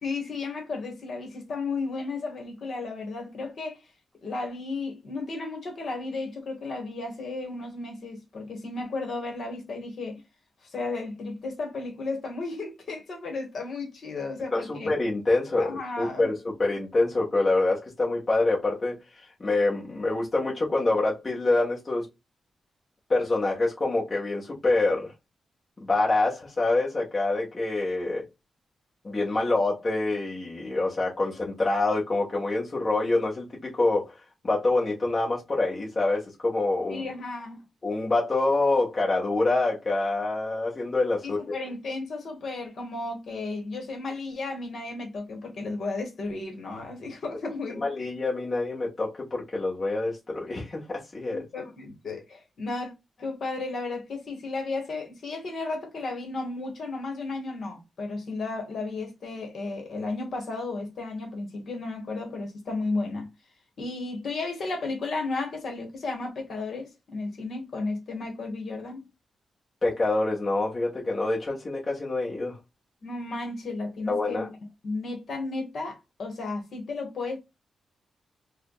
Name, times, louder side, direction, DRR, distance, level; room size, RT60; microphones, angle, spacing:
voice 1, 0.0-3.8 4.2-10.2 10.7-14.9 15.6-16.3 36.9-37.7 41.2-47.9 51.3-63.3 63.8-69.1 73.0-74.5 74.8-77.4, left 3 dB, 55° left, 1.6 m, -34 dB
voice 2, 14.5-19.0 19.4-22.1 23.1-25.1 25.8-28.2 29.0-34.1 34.4-37.1 37.8-41.5 47.7-51.4 69.8-72.6 74.1-74.5, left 2 dB, 25° left, 1.3 m, -26 dB
4.8 x 2.3 x 2.4 m
wide cardioid pair, 165°, 0 cm